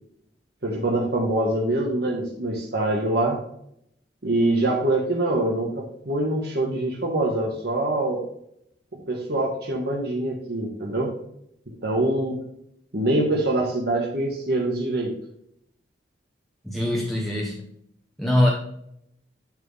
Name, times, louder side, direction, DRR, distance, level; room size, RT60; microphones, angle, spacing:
voice 1, 0.6-3.4 4.2-8.2 9.1-11.1 11.7-12.4 12.9-15.1, right 1 dB, 60° right, -2 dB, 1.6 m, -24 dB
voice 2, 16.7-17.6 18.2-18.5, left 1 dB, ahead, -3 dB, 1.1 m, -22 dB
10.0 x 4.6 x 3.4 m, 0.73 s
head